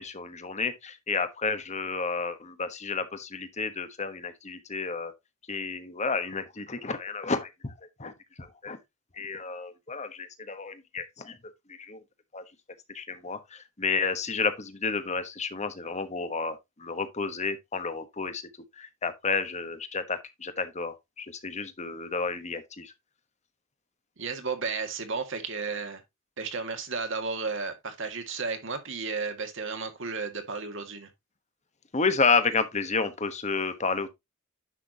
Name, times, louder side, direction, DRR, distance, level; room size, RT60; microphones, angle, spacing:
voice 1, 0.0-5.1 5.5-7.7 8.0-8.1 8.4-8.8 9.2-12.0 12.3-12.4 12.9-18.4 18.8-22.9 31.9-34.1, left 4 dB, 35° left, 1.2 m, -31 dB
voice 2, 24.2-26.0 26.4-31.1, right 4 dB, 65° right, 1.9 m, -33 dB
10.0 x 6.1 x 2.8 m
head